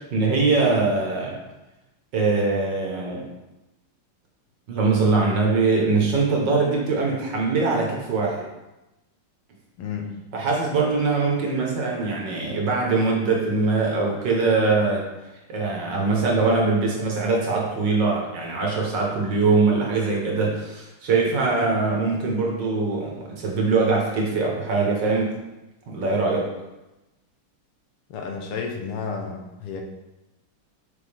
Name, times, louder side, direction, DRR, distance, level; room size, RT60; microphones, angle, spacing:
voice 1, 0.1-1.4 2.1-3.2 4.7-8.4 10.3-15.1 15.5-25.3 25.9-26.5, right 3 dB, 60° right, -1 dB, 1.7 m, -22 dB
voice 2, 9.8-10.2 28.1-29.8, left 5 dB, 85° left, 2 dB, 1.8 m, -31 dB
6.9 x 4.6 x 3.5 m, 0.99 s
omnidirectional pair, 2.4 m